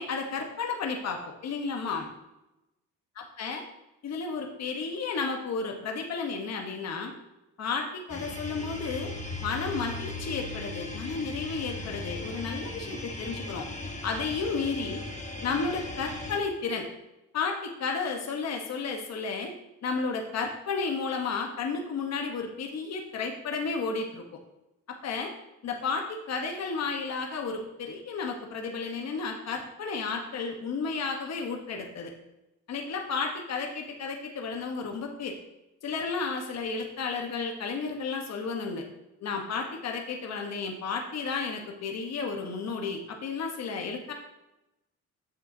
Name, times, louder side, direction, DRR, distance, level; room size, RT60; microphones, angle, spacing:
voice 1, 0.0-2.1 3.4-3.6 4.0-7.1 7.6-9.1 9.4-13.7 14.0-15.0 15.4-16.9 17.3-19.5 19.8-24.2 24.9-25.3 25.6-32.1 32.7-35.3 35.8-38.8 39.2-44.1, left 4 dB, 60° left, 2 dB, 1.3 m, -32 dB
sound 1, 8.1-16.4, left 2 dB, 25° left, 1.4 m, -38 dB
9.2 x 7.0 x 2.8 m, 0.93 s
cardioid pair, 90°, 30 cm